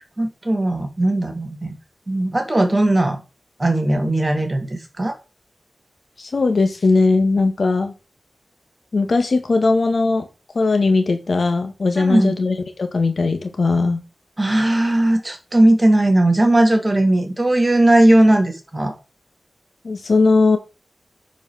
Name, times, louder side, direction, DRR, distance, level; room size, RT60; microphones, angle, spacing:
voice 1, 0.0-1.7 2.1-3.2 3.6-5.2 12.0-12.3 14.4-18.9, right 1 dB, 25° right, 4 dB, 2.9 m, -17 dB
voice 2, 6.2-7.9 8.9-10.3 10.5-14.0 19.8-20.6, left 3 dB, 65° left, 7 dB, 2.0 m, -18 dB
9.7 x 5.4 x 6.6 m, 0.31 s
wide cardioid pair, 65°, 0 cm